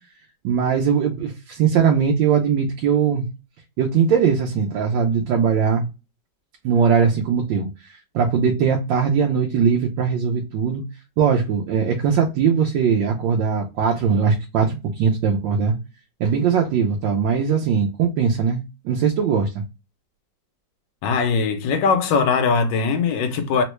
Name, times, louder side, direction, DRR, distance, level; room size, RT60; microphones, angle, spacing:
voice 1, 0.4-3.3 3.8-5.8 6.6-10.8 11.2-15.7 16.2-19.6, right 6 dB, 90° right, 1.3 m, -20 dB
voice 2, 21.0-23.6, left 5 dB, 85° left, 1.4 m, -20 dB
3.7 x 2.1 x 2.9 m
omnidirectional pair, 1.9 m